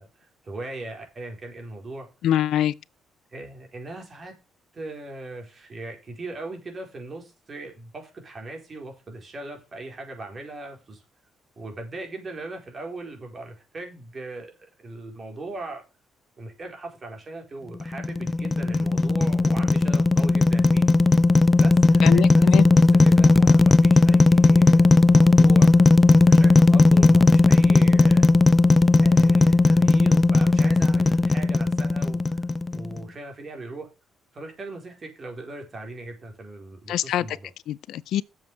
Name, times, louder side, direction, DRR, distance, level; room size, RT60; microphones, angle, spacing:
voice 1, 0.0-2.1 3.3-4.3 4.7-11.0 11.6-15.8 16.4-20.9 21.5-28.3 29.0-32.5 32.7-33.9 34.3-37.5, right 2 dB, 40° right, 4.4 m, -39 dB
voice 2, 2.2-2.7 22.0-22.6 36.9-37.3 37.7-38.2, left 11 dB, 80° left, 0.5 m, -24 dB
sound 1, 17.8-33.0, left 3 dB, 25° left, 0.4 m, -17 dB
7.5 x 7.4 x 6.2 m
cardioid pair, 90°, 0 cm